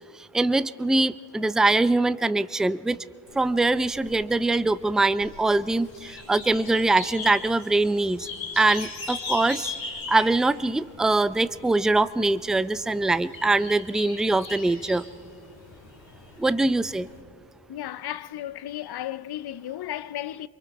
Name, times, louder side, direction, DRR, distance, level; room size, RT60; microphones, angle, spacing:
voice 1, 0.1-3.0 3.3-8.3 8.6-9.7 10.1-15.0 16.4-17.1, right 2 dB, ahead, 0.4 m, -23 dB
sound 1, 3.3-17.2, left 4 dB, 85° left, 3.6 m, -40 dB
voice 2, 17.7-20.5, left 12 dB, 60° left, 0.6 m, -34 dB
24.0 x 23.5 x 4.8 m
cardioid pair, 60°, 44 cm